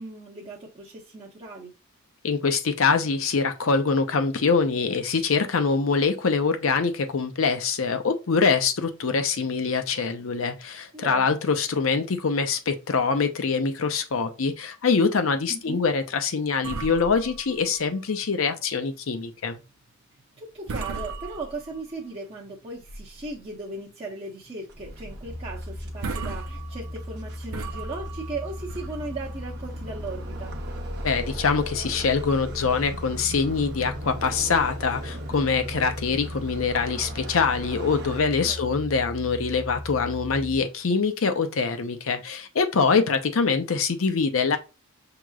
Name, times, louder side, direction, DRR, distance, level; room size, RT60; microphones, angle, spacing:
voice 1, 0.0-1.7 10.9-11.4 15.5-15.8 20.4-30.5 38.4-38.8, right 2 dB, 30° right, 0.9 m, -37 dB
voice 2, 2.2-19.6 31.0-44.6, left 5 dB, 75° left, 0.6 m, -24 dB
sound 1, 16.6-18.4 18.8-18.9 19.4-19.7 20.2-20.4 20.7-22.0 22.5-23.3 23.7-23.8 24.3-24.5 24.8-24.9 25.5-25.6 25.9-29.6, right 4 dB, 80° right, 0.5 m, -37 dB
sound 2, 24.7-38.2, right 1 dB, 55° right, 0.9 m, -40 dB
sound 3, 25.3-40.6, left 1 dB, 5° left, 0.3 m, -38 dB
6.0 x 2.9 x 2.3 m
head